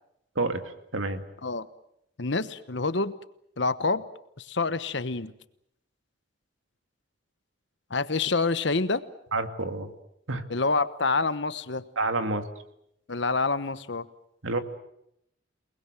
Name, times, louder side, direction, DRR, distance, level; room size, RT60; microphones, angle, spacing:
voice 1, 2.2-3.1 3.6-4.0 4.4-5.3 7.9-9.0 10.5-11.8 13.1-14.1, left 3 dB, 65° left, 13 dB, 1.1 m, -27 dB
voice 2, 9.3-9.9 10.3-10.4 12.0-12.4 14.4-14.6, right 2 dB, 80° right, 7 dB, 2.3 m, -28 dB
28.5 x 20.5 x 7.7 m, 0.77 s
head